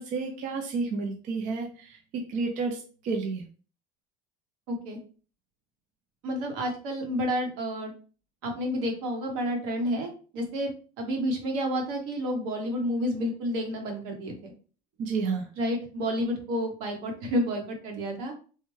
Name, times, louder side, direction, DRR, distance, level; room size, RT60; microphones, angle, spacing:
voice 1, 0.0-3.4 15.0-15.4, right 4 dB, 40° right, 3 dB, 0.5 m, -31 dB
voice 2, 4.7-5.0 6.2-7.9 8.4-10.7 11.0-14.5 15.5-18.3, equal, 75° right, 3 dB, 1.1 m, -30 dB
3.3 x 2.1 x 3.1 m, 0.39 s
cardioid pair, 155°, 20 cm